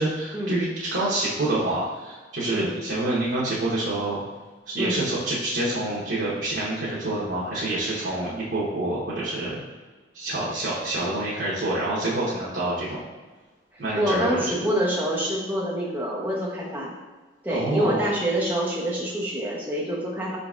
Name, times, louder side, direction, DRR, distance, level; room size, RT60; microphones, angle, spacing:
voice 1, 0.0-4.2 4.7-9.5 10.1-13.0 13.8-14.5 17.5-18.0, right 2 dB, 75° right, -8 dB, 0.9 m, -27 dB
voice 2, 13.9-16.9 17.4-20.4, equal, 10° right, -5 dB, 0.8 m, -26 dB
4.9 x 3.9 x 2.4 m, 1.3 s
head